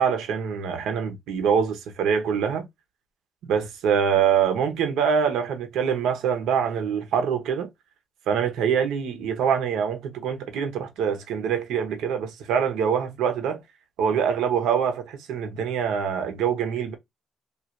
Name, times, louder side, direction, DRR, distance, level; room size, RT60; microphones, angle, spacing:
voice 1, 0.0-2.7 3.4-7.7 8.3-13.6 14.0-16.9, right 7 dB, 85° right, 0.8 m, -24 dB
3.2 x 2.4 x 2.4 m
cardioid pair, 90°, 0 cm